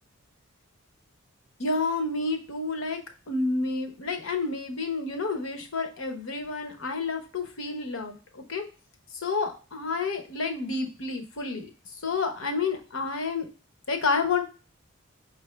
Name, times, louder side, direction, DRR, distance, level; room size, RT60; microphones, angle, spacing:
voice 1, 1.6-3.0 3.3-8.6 9.2-11.7 12.0-13.5 13.9-14.4, left 4 dB, 75° left, 5 dB, 0.9 m, -29 dB
5.4 x 2.7 x 3.2 m, 0.33 s
head